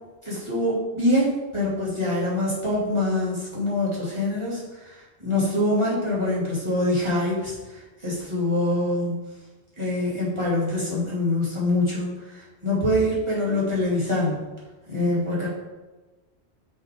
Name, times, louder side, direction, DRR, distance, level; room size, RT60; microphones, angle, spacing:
voice 1, 0.2-9.1 9.8-14.4 14.9-15.5, left 1 dB, 25° right, -7 dB, 2.4 m, -25 dB
8.0 x 3.9 x 3.6 m, 1.2 s
omnidirectional pair, 1.1 m